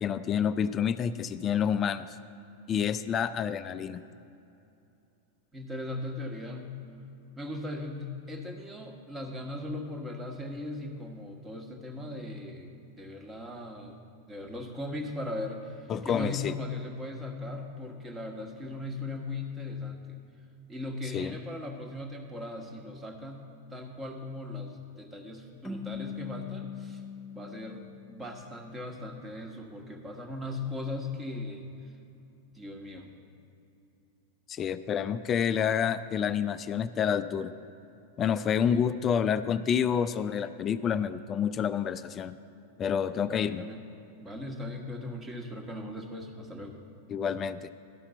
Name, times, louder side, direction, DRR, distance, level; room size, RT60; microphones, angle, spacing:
voice 1, 0.0-2.2 2.7-4.0 15.9-16.5 21.1-21.4 34.5-37.5 38.2-42.4 42.8-43.6 47.1-47.7, left 8 dB, 25° left, 13 dB, 0.3 m, -28 dB
voice 2, 5.5-6.8 7.4-12.7 13.0-14.0 14.3-20.2 20.7-27.0 27.3-31.7 32.5-33.1 38.6-38.8 43.3-43.9 44.2-46.8, left 2 dB, 15° right, 3 dB, 1.2 m, -38 dB
sound 1, 25.6-28.8, left 6 dB, 10° left, 0.9 m, -41 dB
12.5 x 5.7 x 6.8 m, 2.7 s
figure-of-eight pair, 90°, 0 cm